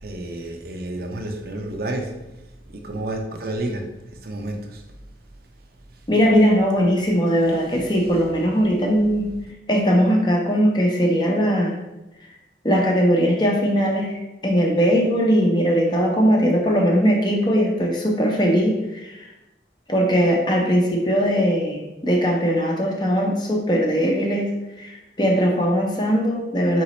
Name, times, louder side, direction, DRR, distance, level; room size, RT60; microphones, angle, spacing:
voice 1, 0.0-2.2 2.7-4.8, right 1 dB, 55° right, 4 dB, 0.5 m, -30 dB
voice 2, 6.1-9.3 9.7-11.8 12.6-19.3 19.9-24.5 24.8-26.8, equal, 25° left, 0 dB, 0.6 m, -20 dB
4.0 x 3.0 x 4.1 m, 0.98 s
head